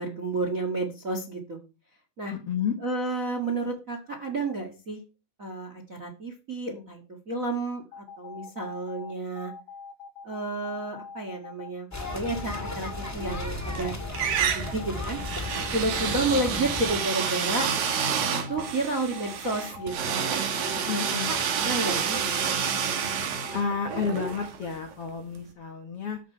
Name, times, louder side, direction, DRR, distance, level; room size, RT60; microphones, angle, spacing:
voice 1, 0.0-1.6 2.2-2.3 2.8-5.0 5.4-9.5 10.2-11.9 12.1-14.0 14.3-15.2 15.5-17.7 18.5-20.2 20.9-21.0 21.3-22.5, right 2 dB, 35° right, 3 dB, 1.4 m, -31 dB
voice 2, 2.3-2.8 16.0-16.4 20.9-21.3 23.5-26.2, left 6 dB, 60° left, 4 dB, 1.7 m, -31 dB
sound 1, 7.9-24.5, left 5 dB, 85° left, 3.3 m, -43 dB
sound 2, 11.9-17.0, left 2 dB, 5° left, 1.3 m, -35 dB
sound 3, 13.2-13.8 14.1-25.0, right 7 dB, 70° right, 3.5 m, -29 dB
12.5 x 8.0 x 4.6 m, 0.31 s
omnidirectional pair, 4.2 m